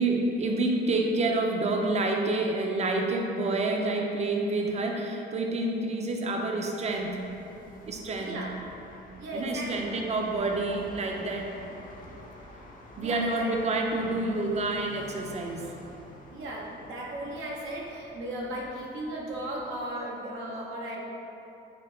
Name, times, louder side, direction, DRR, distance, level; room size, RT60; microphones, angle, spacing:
voice 1, 0.0-7.2 7.8-8.4 9.3-11.5 13.0-15.7, right 2 dB, 35° right, 1 dB, 0.5 m, -28 dB
sound 1, 6.8-20.0, left 1 dB, 45° left, 0.6 m, -49 dB
voice 2, 8.2-8.5 9.2-9.9 13.0-13.5 16.3-21.0, right 1 dB, 85° right, -3 dB, 0.7 m, -36 dB
4.4 x 2.2 x 3.7 m, 2.8 s
cardioid pair, 90°, 20 cm